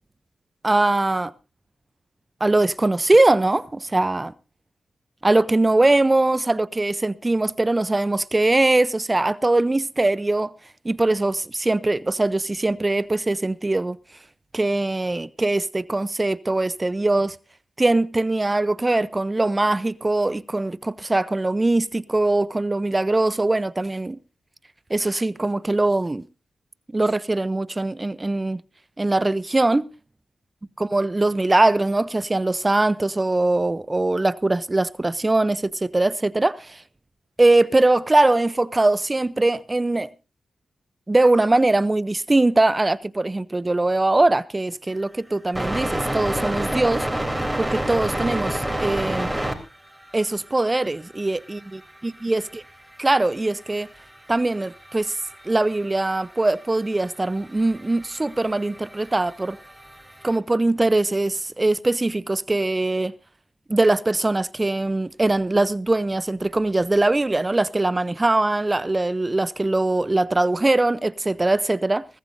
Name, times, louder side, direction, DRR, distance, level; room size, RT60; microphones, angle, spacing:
voice 1, 0.6-1.3 2.4-4.3 5.2-10.5 10.8-14.0 14.5-17.4 17.8-24.2 24.9-26.2 26.9-28.6 29.0-29.9 30.8-36.8 37.4-40.1 41.1-47.1 47.6-49.3 50.1-52.4 53.0-53.9 54.3-55.1 55.4-59.6 60.2-63.1 63.7-72.1, right 2 dB, 25° right, 0.6 m, -21 dB
sound 1, 45.5-49.5 49.9-50.8 51.1-51.2 51.5-53.3 53.7-60.4, right 1 dB, 10° right, 3.4 m, -29 dB
21.5 x 14.5 x 2.6 m
cardioid pair, 50°, 0 cm